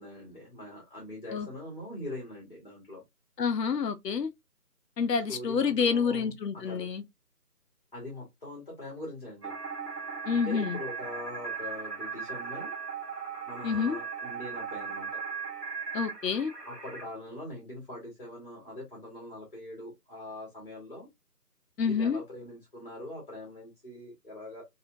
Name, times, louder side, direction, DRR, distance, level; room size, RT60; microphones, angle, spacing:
voice 1, 0.0-3.0 5.3-6.9 7.9-9.5 10.3-12.7 13.5-15.2 16.7-21.1 21.8-24.7, left 1 dB, 30° left, 1.1 m, -42 dB
voice 2, 3.4-4.3 5.0-7.0 10.3-10.8 13.6-14.0 15.9-16.5 21.8-22.2, left 6 dB, 85° left, 0.6 m, -28 dB
sound 1, 9.4-17.0, right 5 dB, 80° right, 1.1 m, -38 dB
2.7 x 2.5 x 2.5 m
figure-of-eight pair, 165°, 48 cm